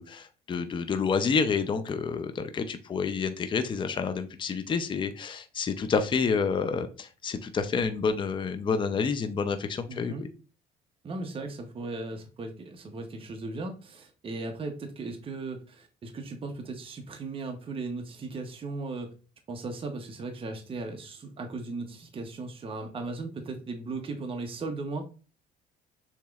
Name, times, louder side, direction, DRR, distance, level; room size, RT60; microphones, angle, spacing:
voice 1, 0.0-10.3, left 5 dB, 30° left, 8 dB, 0.5 m, -29 dB
voice 2, 9.9-10.3 11.0-19.1 19.5-25.0, right 3 dB, 30° right, 4 dB, 0.8 m, -37 dB
7.0 x 3.0 x 2.4 m, 0.35 s
cardioid pair, 110°, 17 cm